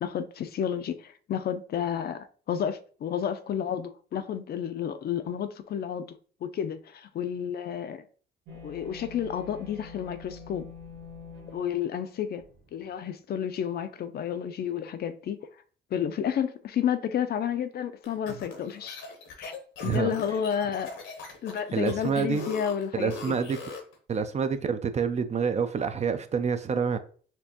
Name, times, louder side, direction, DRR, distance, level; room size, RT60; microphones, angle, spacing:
voice 1, 0.0-6.2 6.4-8.0 8.6-10.7 11.5-12.5 12.7-15.4 15.9-19.0 19.4-19.5 19.8-20.9 21.4-23.4, left 8 dB, 55° left, 0.4 m, -31 dB
sound 1, 8.5-12.7, left 4 dB, 80° right, 1.2 m, -46 dB
sound 2, 18.0-23.9, left 4 dB, 85° left, 1.0 m, -41 dB
voice 2, 19.8-20.1 21.7-22.5 22.9-23.6 24.1-27.0, right 6 dB, 35° right, 0.4 m, -27 dB
4.4 x 2.5 x 2.8 m
cardioid pair, 90°, 20 cm